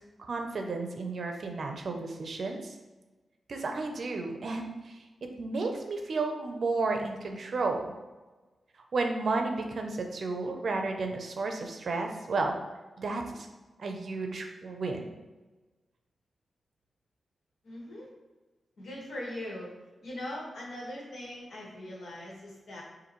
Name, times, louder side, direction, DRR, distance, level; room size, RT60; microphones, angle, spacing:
voice 1, 0.2-2.8 3.5-7.9 8.9-12.6 13.0-13.5 13.8-15.1, right 3 dB, 55° right, 4 dB, 0.5 m, -32 dB
voice 2, 17.6-18.1 18.8-19.7 20.0-22.8, left 1 dB, 80° left, -4 dB, 1.5 m, -40 dB
6.7 x 2.6 x 3.0 m, 1.2 s
wide cardioid pair, 145°, 0 cm